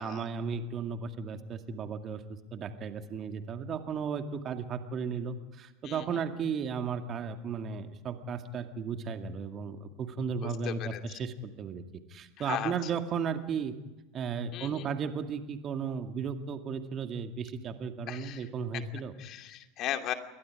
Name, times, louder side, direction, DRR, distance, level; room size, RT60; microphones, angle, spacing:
voice 1, 0.0-2.2 2.5-11.8 12.1-13.7 14.1-19.1, right 6 dB, 35° right, 7 dB, 2.2 m, -35 dB
voice 2, 10.6-11.0 12.4-12.7 14.5-14.7 18.1-18.4 19.2-20.1, left 12 dB, 45° left, 6 dB, 2.6 m, -36 dB
28.5 x 23.0 x 5.0 m, 1.1 s
figure-of-eight pair, 80°, 0 cm